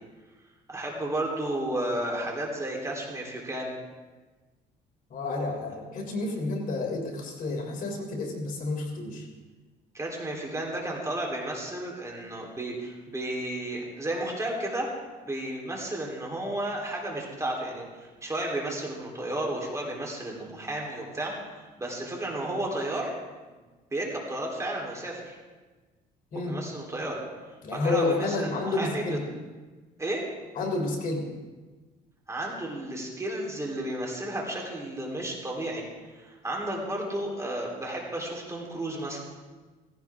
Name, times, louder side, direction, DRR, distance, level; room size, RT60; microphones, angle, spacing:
voice 1, 0.7-3.7 9.9-14.9 15.3-21.4 21.8-23.1 23.9-25.4 26.3-27.2 27.7-29.2 30.0-30.3 32.3-35.8 36.1-39.2, right 1 dB, 15° right, -1 dB, 3.5 m, -32 dB
voice 2, 5.1-9.3 26.3-26.6 27.6-29.2 30.5-31.2, left 2 dB, 55° left, 1 dB, 3.3 m, -30 dB
17.0 x 16.5 x 3.6 m, 1.3 s
cardioid pair, 110°, 17 cm